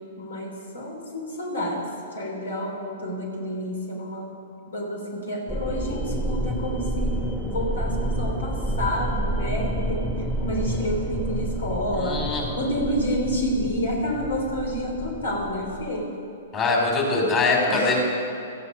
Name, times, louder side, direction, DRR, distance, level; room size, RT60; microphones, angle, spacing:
voice 1, 0.2-1.9 2.1-4.4 4.7-16.1 17.7-18.0, equal, 85° left, 1 dB, 3.3 m, -29 dB
sound 1, 5.5-16.0, right 1 dB, 5° left, 1.4 m, -29 dB
voice 2, 11.9-12.5 16.5-18.0, left 3 dB, 30° left, -1 dB, 4.5 m, -22 dB
16.5 x 13.5 x 5.1 m, 2.6 s
hypercardioid pair, 130°, 0 cm